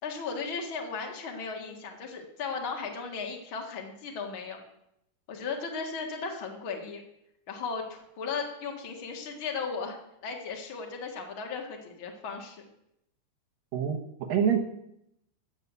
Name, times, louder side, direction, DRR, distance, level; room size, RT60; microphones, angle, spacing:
voice 1, 0.0-4.6 5.3-7.0 7.5-12.7, left 5 dB, 70° left, 1 dB, 1.2 m, -36 dB
voice 2, 13.7-14.6, right 8 dB, 70° right, 4 dB, 2.3 m, -26 dB
15.5 x 6.5 x 8.2 m, 0.79 s
omnidirectional pair, 5.3 m